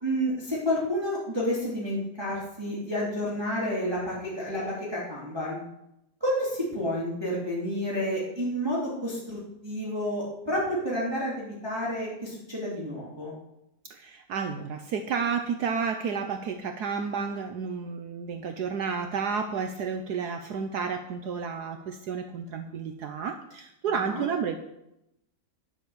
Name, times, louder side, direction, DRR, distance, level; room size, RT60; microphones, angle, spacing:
voice 1, 0.0-5.6 6.2-13.3 23.9-24.2, equal, 15° right, -6 dB, 2.7 m, -30 dB
voice 2, 13.9-24.6, right 6 dB, 70° right, 6 dB, 1.2 m, -31 dB
10.5 x 7.5 x 7.0 m, 0.86 s
omnidirectional pair, 2.0 m